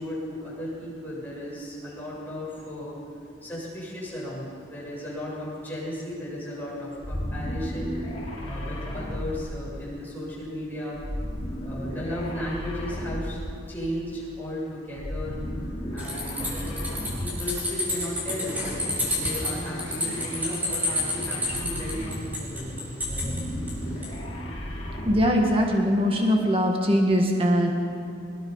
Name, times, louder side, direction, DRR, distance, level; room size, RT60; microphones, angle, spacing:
voice 1, 0.0-3.0 3.4-11.0 11.6-13.4 13.7-15.4 15.9-23.4, left 1 dB, 10° left, -7 dB, 7.6 m, -35 dB
sound 1, 7.0-10.0 10.9-13.6 14.9-17.5 18.5-22.5 22.9-25.4, equal, 35° left, 4.7 m, -34 dB
sound 2, 16.0-24.1, left 1 dB, 10° right, 5.1 m, -30 dB
voice 2, 25.0-27.7, equal, 30° right, 1 dB, 1.9 m, -21 dB
24.5 x 20.5 x 5.7 m, 2.5 s
head